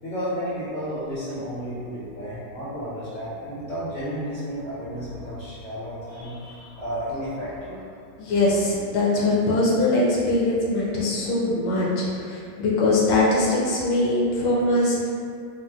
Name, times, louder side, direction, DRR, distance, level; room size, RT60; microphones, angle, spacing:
voice 1, 0.0-7.9, equal, 60° left, -11 dB, 0.7 m, -32 dB
voice 2, 8.2-15.1, left 2 dB, 80° left, -5 dB, 1.3 m, -22 dB
4.0 x 2.1 x 2.3 m, 2.3 s
omnidirectional pair, 2.0 m